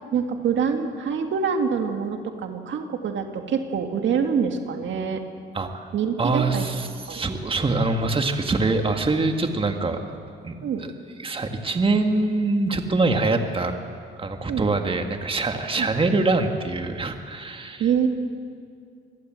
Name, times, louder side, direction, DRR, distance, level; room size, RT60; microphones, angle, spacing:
voice 1, 0.1-5.2 5.9-6.7 7.1-7.3 10.6-10.8 14.5-14.6 15.8-15.9 17.8-18.1, right 6 dB, 70° right, 5 dB, 2.1 m, -25 dB
voice 2, 5.5-5.9 6.2-10.2 10.4-10.9 11.2-13.7 14.2-17.8, right 3 dB, 25° right, 5 dB, 1.9 m, -24 dB
25.0 x 18.5 x 7.8 m, 2.3 s
cardioid pair, 90°, 20 cm